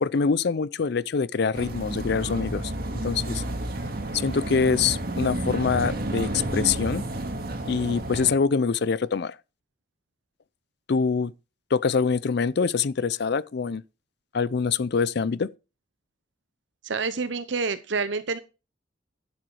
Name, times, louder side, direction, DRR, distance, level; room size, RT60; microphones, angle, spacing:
voice 1, 0.0-2.7 3.0-3.4 4.1-7.0 7.7-9.4 10.9-11.3 11.7-13.8 14.3-15.5, left 5 dB, 55° left, 0.5 m, -24 dB
sound 1, 1.5-8.3, right 1 dB, 50° right, 2.1 m, -31 dB
voice 2, 16.8-18.4, right 4 dB, 65° right, 0.8 m, -28 dB
11.5 x 7.7 x 4.7 m
head